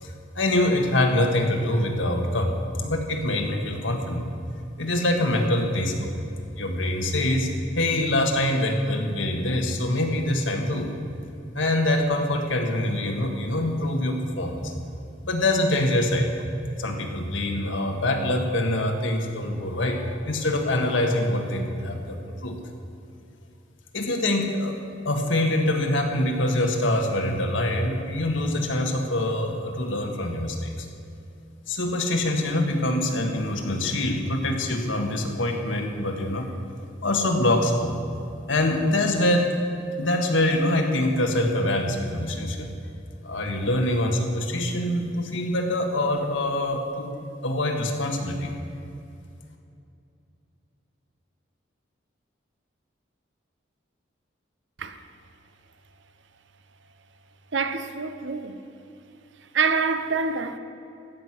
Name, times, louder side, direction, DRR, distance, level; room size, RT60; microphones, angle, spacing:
voice 1, 0.0-4.3 4.8-6.1 6.5-7.5 7.7-10.9 11.5-14.7 15.2-16.4 16.8-22.6 23.9-24.8 25.0-30.9 31.7-36.6 37.0-38.0 38.5-39.5 40.0-42.7 43.2-47.1 47.4-48.5, left 1 dB, 90° left, 1.7 m, -24 dB
voice 2, 57.5-58.6 59.5-60.6, right 5 dB, 75° right, 0.8 m, -26 dB
14.5 x 6.4 x 9.3 m
head